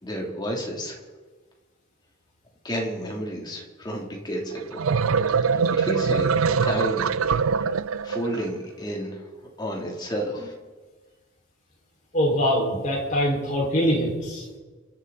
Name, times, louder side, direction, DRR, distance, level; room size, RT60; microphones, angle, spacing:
voice 1, 0.0-1.0 2.6-4.8 5.5-6.3 6.6-7.1 7.3-7.6 8.0-9.3 9.6-10.5, equal, 20° left, -1 dB, 3.1 m, -31 dB
sound 1, 4.6-8.4, right 5 dB, 70° right, 0.5 m, -23 dB
voice 2, 12.1-14.4, equal, 35° left, -3 dB, 5.1 m, -23 dB
28.0 x 11.5 x 4.2 m, 1.3 s
head